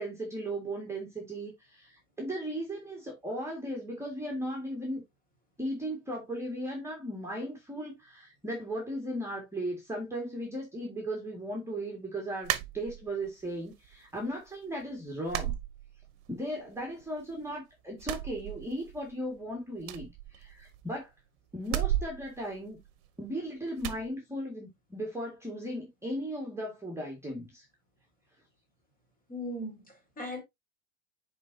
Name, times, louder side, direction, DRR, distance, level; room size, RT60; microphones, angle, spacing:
voice 1, 0.0-5.0 5.6-15.5 16.3-21.1 21.5-22.8 23.2-27.7, right 1 dB, 5° right, 2.0 m, -37 dB
sound 1, 12.4-13.3 13.7-14.4 14.7-14.8 15.3-16.4 16.7-17.5 17.9-19.1 19.4-19.5 19.8-21.0 21.6-23.3 23.8-24.1, right 13 dB, 60° right, 1.0 m, -35 dB
voice 2, 29.3-30.4, left 1 dB, 20° left, 3.2 m, -38 dB
9.3 x 4.0 x 2.7 m
supercardioid pair, 115°, 39 cm